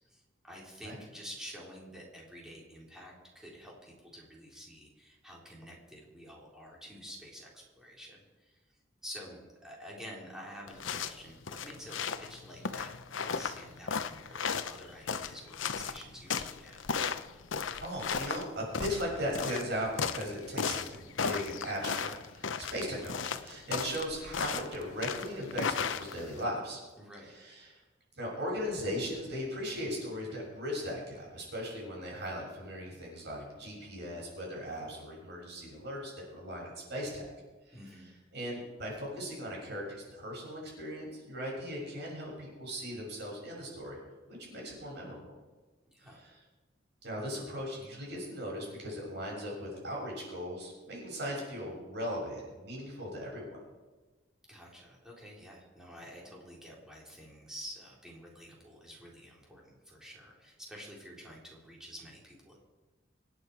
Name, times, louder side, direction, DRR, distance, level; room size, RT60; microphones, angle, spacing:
voice 1, 0.1-8.6 9.0-16.8 27.0-27.4 37.7-38.0 45.9-46.2 54.5-62.6, equal, 5° right, -3 dB, 3.8 m, -49 dB
sound 1, 10.7-26.4, left 6 dB, 90° left, 0.8 m, -36 dB
voice 2, 17.8-26.8 27.2-27.8 28.2-37.3 37.7-37.8 38.3-44.0 44.3-45.3 46.0-46.4 47.0-53.6, equal, 60° right, -2 dB, 6.7 m, -38 dB
26.0 x 9.2 x 4.8 m, 1.3 s
head